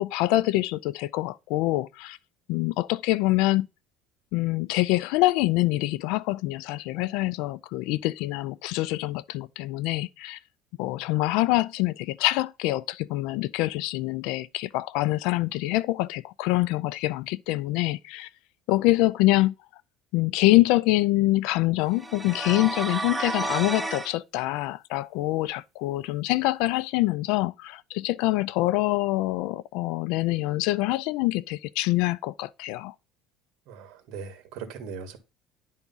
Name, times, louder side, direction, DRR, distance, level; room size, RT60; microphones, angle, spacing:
voice 1, 0.0-2.2 2.5-3.7 4.3-10.4 10.8-18.3 18.7-19.5 20.1-32.9, left 18 dB, 70° left, 0.4 m, -25 dB
sound 1, 22.0-24.1, right 2 dB, 10° right, 0.5 m, -31 dB
voice 2, 33.7-35.2, right 6 dB, 65° right, 1.8 m, -39 dB
10.5 x 3.6 x 5.5 m
cardioid pair, 145°, 0 cm